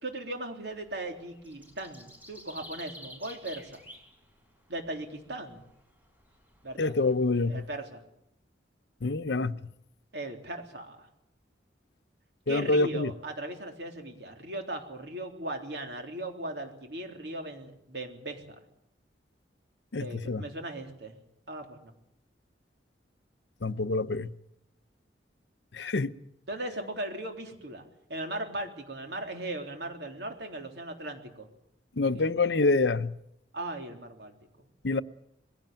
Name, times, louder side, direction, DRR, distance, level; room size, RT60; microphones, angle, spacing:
voice 1, 0.0-3.8 4.7-5.7 6.6-6.9 7.5-8.0 10.1-11.1 12.5-18.6 20.0-21.2 21.5-21.9 26.5-27.8 28.1-31.5 33.5-34.7, right 1 dB, 65° right, 3.5 m, -38 dB
sound 1, 0.7-7.7, equal, 10° right, 5.0 m, -50 dB
voice 2, 6.8-7.6 9.0-9.5 12.5-13.1 19.9-20.4 23.6-24.3 25.7-26.1 32.0-33.1 34.8-35.0, left 3 dB, 70° left, 0.8 m, -26 dB
21.5 x 16.5 x 9.0 m
head